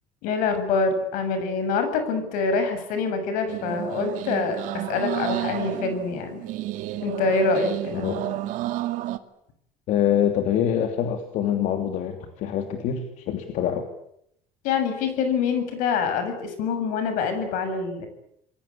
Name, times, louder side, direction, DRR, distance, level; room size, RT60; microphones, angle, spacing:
voice 1, 0.2-4.6 4.9-6.4 7.0-8.1 14.6-18.1, left 4 dB, 85° left, 8 dB, 7.3 m, -25 dB
sound 1, 3.5-9.2, right 14 dB, 75° right, 2.1 m, -31 dB
voice 2, 8.0-8.3 9.9-13.9, left 9 dB, 65° left, 6 dB, 3.0 m, -25 dB
28.5 x 22.0 x 8.7 m, 0.73 s
cardioid pair, 150°, 14 cm